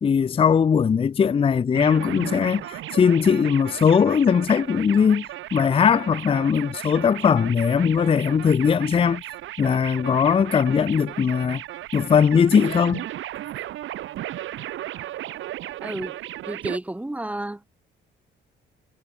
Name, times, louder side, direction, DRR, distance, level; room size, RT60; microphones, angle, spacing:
voice 1, 0.0-5.2 5.5-9.2 9.6-11.6 11.9-13.1, left 7 dB, 30° left, 0.5 m, -20 dB
sound 1, 1.7-16.8, right 14 dB, 80° right, 1.3 m, -35 dB
voice 2, 15.8-16.2 16.5-17.6, right 1 dB, 5° right, 0.7 m, -31 dB
cardioid pair, 90°, 20 cm